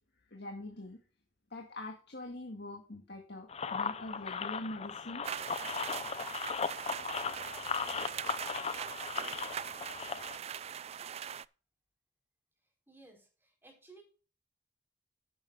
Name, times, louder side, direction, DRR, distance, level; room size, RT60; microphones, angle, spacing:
voice 1, 0.3-1.0 1.5-5.2, left 1 dB, 60° left, 1 dB, 2.0 m, -43 dB
sound 1, 3.5-10.4, left 6 dB, 35° left, 0.6 m, -37 dB
sound 2, 5.2-11.5, right 8 dB, 35° right, 0.3 m, -41 dB
voice 2, 12.6-14.0, right 3 dB, 10° right, 0 dB, 4.7 m, -58 dB
12.0 x 10.5 x 2.5 m, 0.37 s
head